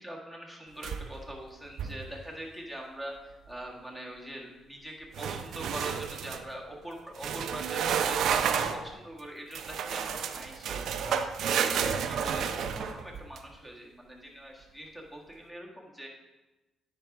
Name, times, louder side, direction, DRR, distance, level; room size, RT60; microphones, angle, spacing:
voice 1, 0.0-16.1, equal, 5° left, -1 dB, 1.7 m, -43 dB
sound 1, 0.8-1.3 1.7-2.1 5.1-6.4 7.2-8.8 9.5-13.4, right 7 dB, 75° right, 0.5 m, -31 dB
9.9 x 4.8 x 3.6 m, 1.1 s
cardioid pair, 90°, 0 cm